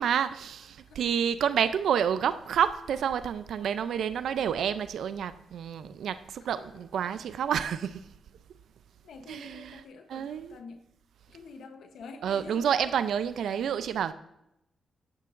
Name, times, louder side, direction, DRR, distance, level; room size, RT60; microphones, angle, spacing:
voice 1, 0.0-8.1 9.3-9.8 10.1-10.6 12.2-14.1, right 8 dB, 80° right, 0.4 m, -29 dB
voice 2, 9.0-10.8 11.3-12.9 13.4-13.7, left 4 dB, 80° left, 0.8 m, -48 dB
10.5 x 9.5 x 2.5 m
cardioid pair, 95°, 0 cm